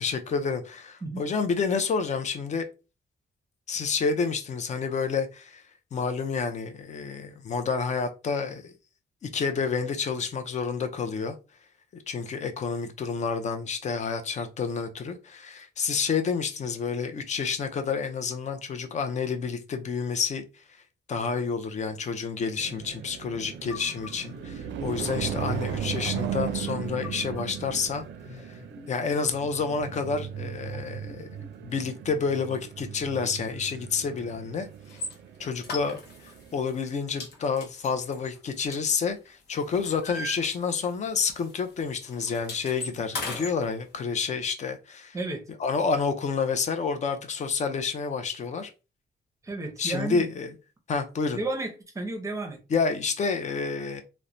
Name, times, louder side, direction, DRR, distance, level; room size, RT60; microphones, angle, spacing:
voice 1, 0.0-2.7 3.7-5.6 5.9-8.7 9.2-11.3 11.9-20.4 21.1-28.0 28.5-28.6 28.9-31.3 31.6-34.7 35.4-36.0 36.5-45.2 45.6-48.7 49.8-50.5 50.9-51.4 52.7-54.0, left 5 dB, 40° left, 0.4 m, -29 dB
sound 1, 22.6-36.6, right 9 dB, 85° right, 0.4 m, -36 dB
sound 2, 23.5-32.0, left 4 dB, 15° left, 1.0 m, -50 dB
sound 3, 34.9-35.1 35.6-36.4 36.7-36.9 37.2-39.3 39.6-41.1 41.3-41.5 41.8-43.5, left 2 dB, 65° left, 0.8 m, -37 dB
voice 2, 49.4-50.2 51.4-52.6, right 2 dB, 15° right, 0.6 m, -32 dB
3.0 x 2.1 x 2.5 m
cardioid pair, 145°, 18 cm